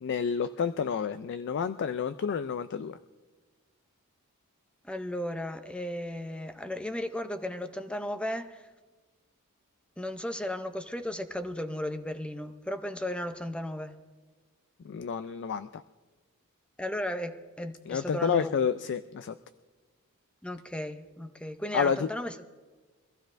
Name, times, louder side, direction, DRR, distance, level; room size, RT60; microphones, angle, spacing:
voice 1, 0.0-3.0 14.8-15.8 17.9-19.4 21.7-22.1, left 6 dB, 55° left, 0.3 m, -29 dB
voice 2, 4.8-8.7 10.0-14.0 16.8-18.5 20.4-22.5, left 1 dB, 5° left, 0.5 m, -35 dB
24.0 x 15.0 x 2.6 m
head